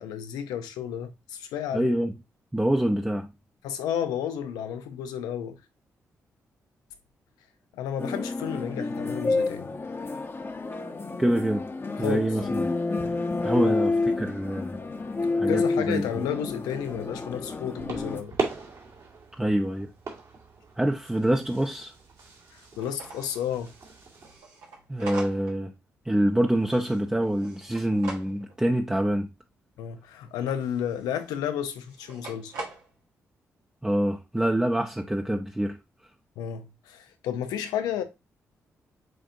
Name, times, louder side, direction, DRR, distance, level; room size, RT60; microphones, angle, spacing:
voice 1, 0.0-1.9 3.6-5.6 7.7-9.7 12.0-12.3 13.5-13.8 15.2-18.4 22.5-23.7 29.8-32.5 36.4-38.0, left 9 dB, 85° left, 0.6 m, -32 dB
voice 2, 1.7-2.1 2.5-3.3 11.2-11.7 12.0-12.7 13.4-14.8 15.3-16.0 19.4-19.9 20.8-21.9 24.9-25.7 26.1-29.3 33.8-35.8, right 1 dB, 10° right, 0.6 m, -26 dB
sound 1, 8.0-18.2, left 3 dB, 35° left, 0.8 m, -29 dB
sound 2, 16.9-24.4, right 4 dB, 65° right, 1.9 m, -39 dB
sound 3, 22.8-25.7 26.0-28.6 30.3-31.4 31.8-32.9, right 3 dB, 90° right, 1.1 m, -43 dB
7.6 x 2.6 x 2.6 m
hypercardioid pair, 45°, 7 cm